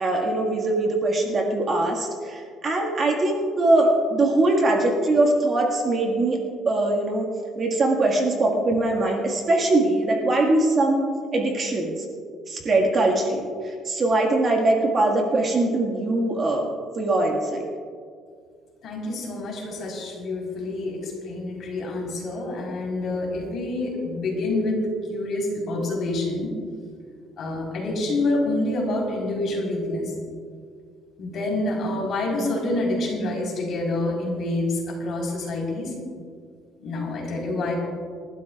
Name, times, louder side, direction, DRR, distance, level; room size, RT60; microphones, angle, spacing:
voice 1, 0.0-6.4 6.7-7.3 7.6-11.0 11.3-12.1 12.5-16.6 16.9-17.6, right 2 dB, 30° right, 0 dB, 1.8 m, -22 dB
voice 2, 18.8-24.8 25.1-26.5 27.4-30.1 31.2-35.9 36.8-37.7, left 2 dB, 45° left, -2 dB, 4.1 m, -27 dB
29.0 x 12.5 x 2.4 m, 2.1 s
cardioid pair, 165°, 0 cm